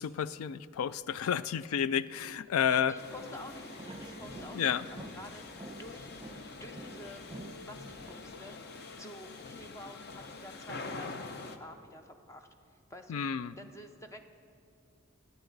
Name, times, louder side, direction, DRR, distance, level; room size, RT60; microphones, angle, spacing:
voice 1, 0.0-2.9 4.5-4.8 13.1-13.5, left 8 dB, 85° left, 17 dB, 0.4 m, -31 dB
voice 2, 2.7-5.4 5.8-6.1 6.6-7.3 7.6-12.5 12.9-13.2 13.6-14.3, left 1 dB, 15° left, 6 dB, 0.5 m, -49 dB
sound 1, 3.0-11.6, left 3 dB, 50° left, 0.7 m, -45 dB
sound 2, 3.1-8.4, right 1 dB, 20° right, 0.8 m, -49 dB
23.0 x 9.1 x 4.0 m, 2.5 s
head